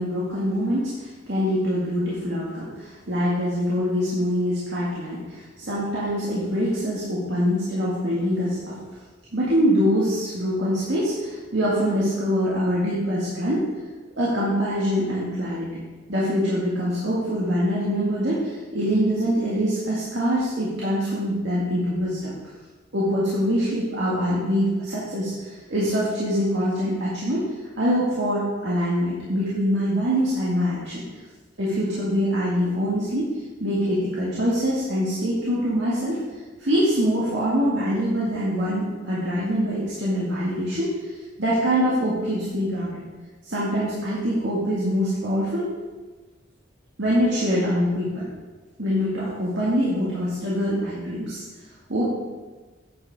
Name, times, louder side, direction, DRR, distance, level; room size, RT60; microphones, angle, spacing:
voice 1, 0.0-8.8 9.3-13.7 14.2-15.8 16.1-22.3 22.9-27.4 27.8-31.0 31.6-33.3 33.6-36.2 36.6-40.9 41.4-43.0 43.4-45.7 47.0-48.3 48.8-51.4 51.9-52.1, equal, 65° right, -8 dB, 2.0 m, -24 dB
9.5 x 7.9 x 3.6 m, 1.3 s
head